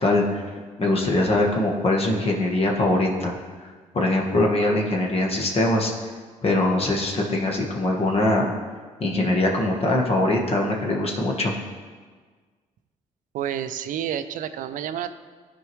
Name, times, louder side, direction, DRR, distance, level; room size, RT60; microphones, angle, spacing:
voice 1, 0.0-0.4 0.8-3.3 3.9-5.9 6.4-8.5 9.0-11.5, left 2 dB, 45° left, 0 dB, 1.2 m, -22 dB
voice 2, 13.3-15.1, right 10 dB, 70° right, 11 dB, 0.5 m, -29 dB
12.0 x 4.6 x 3.1 m, 1.5 s
cardioid pair, 75°, 14 cm